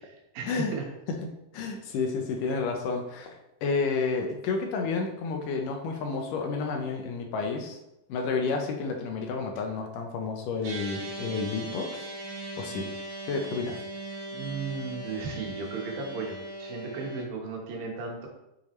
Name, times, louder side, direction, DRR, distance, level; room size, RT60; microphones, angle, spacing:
voice 1, 0.1-0.9 14.3-18.3, right 4 dB, 85° right, 0 dB, 3.1 m, -35 dB
voice 2, 1.5-7.8 8.1-12.1 12.6-12.9 13.3-13.8, left 4 dB, 75° left, 3 dB, 2.4 m, -30 dB
sound 1, 10.6-17.2, right 2 dB, 65° right, 3.1 m, -39 dB
7.2 x 7.0 x 3.2 m, 0.89 s
omnidirectional pair, 4.0 m